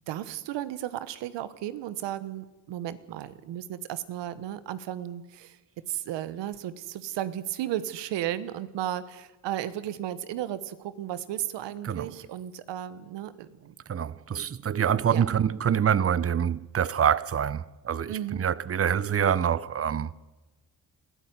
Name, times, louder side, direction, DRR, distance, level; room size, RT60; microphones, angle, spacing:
voice 1, 0.1-5.6 5.9-13.7 15.1-15.2 18.1-18.4, right 12 dB, 85° right, 1.3 m, -34 dB
voice 2, 13.9-20.1, right 8 dB, 35° right, 0.8 m, -26 dB
21.5 x 14.0 x 9.5 m
cardioid pair, 70°, 42 cm